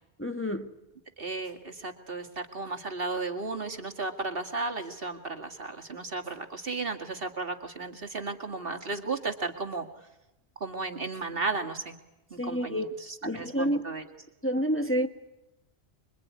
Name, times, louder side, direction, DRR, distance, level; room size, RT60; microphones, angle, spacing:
voice 1, 0.2-0.7 12.4-12.9 13.2-13.8 14.4-15.1, equal, 10° left, 1.3 m, -28 dB
voice 2, 1.2-9.9 10.6-11.9 12.3-14.0, right 3 dB, 55° right, 2.4 m, -34 dB
26.5 x 23.0 x 9.6 m
omnidirectional pair, 1.1 m